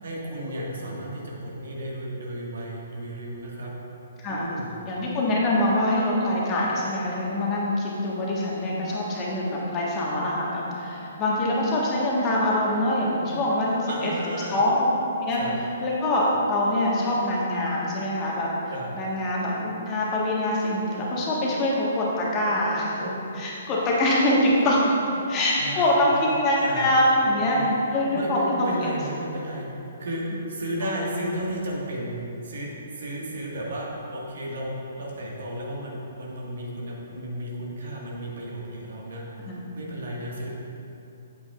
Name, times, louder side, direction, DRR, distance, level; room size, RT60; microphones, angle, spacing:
voice 1, 0.0-3.7 4.3-4.7 13.9-14.6 15.3-15.5 18.7-18.9 23.0-23.3 24.6-26.3 26.6-26.9 27.2-27.7 28.1-29.7 30.0-40.5, right 1 dB, 60° right, -4 dB, 1.7 m, -34 dB
voice 2, 4.8-14.1 14.5-14.9 15.2-15.4 15.8-18.5 18.9-23.0 23.4-24.8 25.3-27.6 27.9-28.9 39.4-39.6, left 1 dB, 25° left, -4 dB, 1.4 m, -24 dB
8.6 x 8.2 x 2.5 m, 2.9 s
figure-of-eight pair, 125°, 0 cm